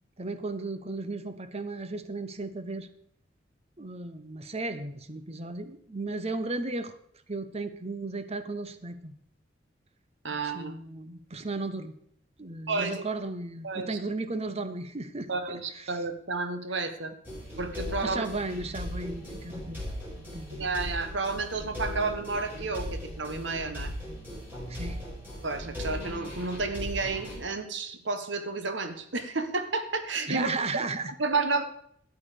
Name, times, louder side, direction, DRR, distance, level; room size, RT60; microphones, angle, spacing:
voice 1, 0.2-2.9 3.8-6.9 7.3-9.1 10.3-11.9 12.4-15.9 18.0-19.8 20.1-20.6 24.7-25.0 30.2-31.1, right 3 dB, 35° right, 11 dB, 1.0 m, -35 dB
voice 2, 10.2-10.7 12.7-13.0 13.6-14.0 15.3-17.1 17.6-18.3 20.5-23.9 25.4-30.5 31.2-31.6, right 3 dB, 65° right, 9 dB, 1.3 m, -31 dB
sound 1, 17.3-27.4, left 1 dB, 10° right, 6.0 m, -38 dB
13.0 x 9.6 x 5.1 m, 0.67 s
head